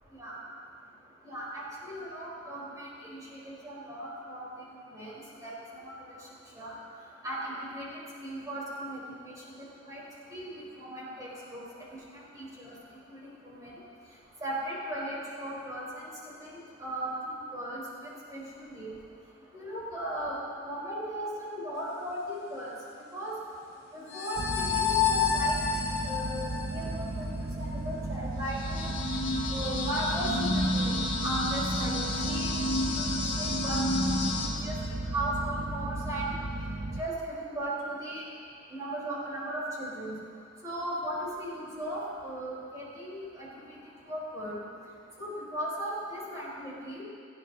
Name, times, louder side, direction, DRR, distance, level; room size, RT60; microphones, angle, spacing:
voice 1, 1.2-4.5 4.7-5.1 5.4-5.5 5.8-6.2 6.6-6.7 7.2-9.4 9.9-10.0 10.3-11.6 12.1-12.7 13.1-13.7 14.4-16.1 16.4-16.5 16.8-18.9 19.5-22.7 23.1-23.3 23.9-28.9 29.5-30.9 31.2-34.8 35.1-36.3 37.0-38.2 38.7-40.1 40.6-44.6 45.2-47.0, right 1 dB, 20° right, -7 dB, 3.9 m, -37 dB
sound 1, 24.1-27.2 28.4-34.5, left 3 dB, 65° left, 2.3 m, -30 dB
sound 2, 24.4-37.0, right 2 dB, 55° right, 0.8 m, -35 dB
18.0 x 15.0 x 2.8 m, 2.2 s
head